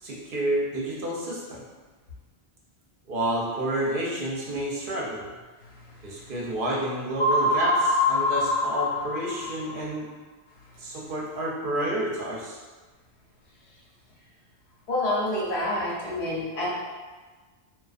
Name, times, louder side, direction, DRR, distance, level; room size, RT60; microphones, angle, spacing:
voice 1, 0.0-1.6 3.1-5.2 6.0-10.1 10.8-12.6, right 1 dB, 60° right, -4 dB, 0.7 m, -29 dB
voice 2, 5.6-6.3 10.6-10.8 14.9-16.8, left 1 dB, 75° left, -6 dB, 1.0 m, -29 dB
sound 1, 7.2-9.8, left 2 dB, 45° left, 0.3 m, -24 dB
2.4 x 2.2 x 2.4 m, 1.3 s
omnidirectional pair, 1.1 m